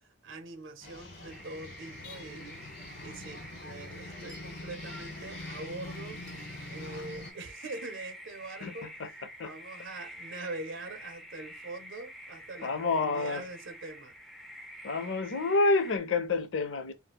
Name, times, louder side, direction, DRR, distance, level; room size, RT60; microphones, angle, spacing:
voice 1, 0.2-2.5 3.0-6.2 6.7-14.1, right 2 dB, 70° right, 0.6 m, -43 dB
sound 1, 0.8-7.3, left 2 dB, 55° left, 1.0 m, -44 dB
sound 2, 1.3-16.0, equal, ahead, 0.4 m, -48 dB
voice 2, 12.6-13.4 14.8-16.9, left 3 dB, 70° left, 0.5 m, -28 dB
4.2 x 2.0 x 2.2 m
head